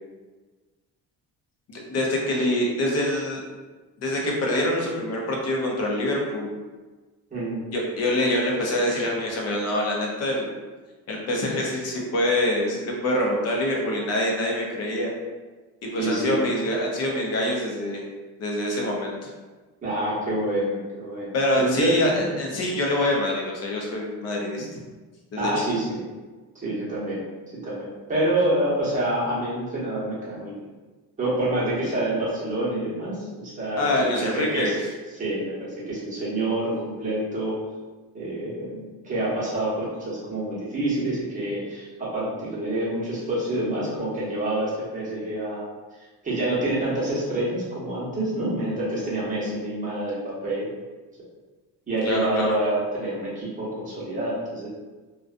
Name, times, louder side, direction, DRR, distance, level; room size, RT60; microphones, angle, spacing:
voice 1, 1.7-3.4 4.0-6.5 7.7-10.5 11.1-15.1 15.8-18.0 18.4-19.3 21.3-24.8 25.3-25.5 33.8-34.7 52.0-52.5, left 1 dB, 45° left, -1 dB, 0.6 m, -25 dB
voice 2, 7.3-7.6 16.0-16.4 19.8-22.3 25.4-26.0 26.6-27.2 27.6-30.5 31.2-34.8 35.1-37.6 38.1-45.7 46.2-50.7 51.9-54.7, right 1 dB, 20° right, -8 dB, 0.9 m, -27 dB
2.5 x 2.2 x 2.4 m, 1.3 s
cardioid pair, 140°, 36 cm